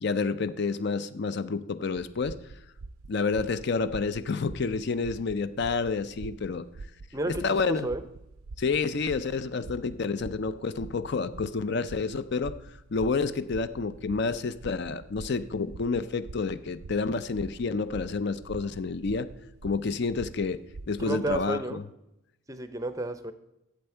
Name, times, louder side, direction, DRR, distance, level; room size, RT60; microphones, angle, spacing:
voice 1, 0.0-2.4 3.1-6.7 7.4-7.9 8.6-12.5 12.9-19.3 19.6-20.6 20.9-21.6, left 4 dB, 50° left, 13 dB, 0.5 m, -29 dB
sound 1, 1.9-21.4, right 3 dB, 85° right, 0.5 m, -46 dB
voice 2, 7.1-8.0 21.1-21.8 22.5-23.3, right 2 dB, 15° right, 11 dB, 0.5 m, -31 dB
11.5 x 7.8 x 4.4 m, 0.89 s
head